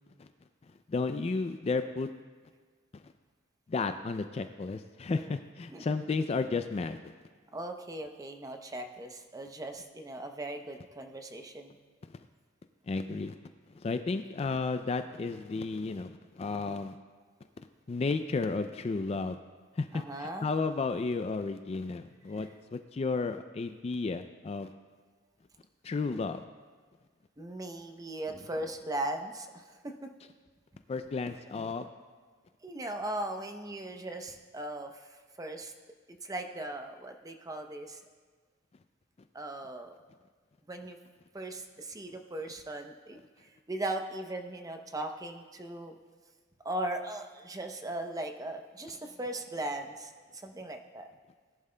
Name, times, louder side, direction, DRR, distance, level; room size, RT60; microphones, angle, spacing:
voice 1, 0.9-2.1 3.7-7.1 12.9-13.4 13.7-17.0 17.9-19.4 19.8-24.7 25.8-26.4 30.9-31.9, left 4 dB, 30° left, 9 dB, 0.3 m, -33 dB
voice 2, 7.5-11.8 19.9-20.5 22.4-22.5 27.4-30.1 31.3-31.4 32.6-35.7 36.2-38.0 39.3-40.0 40.7-41.0 41.3-46.0 46.6-51.1, right 1 dB, 15° right, 5 dB, 0.7 m, -38 dB
18.5 x 11.0 x 2.2 m, 1.5 s
head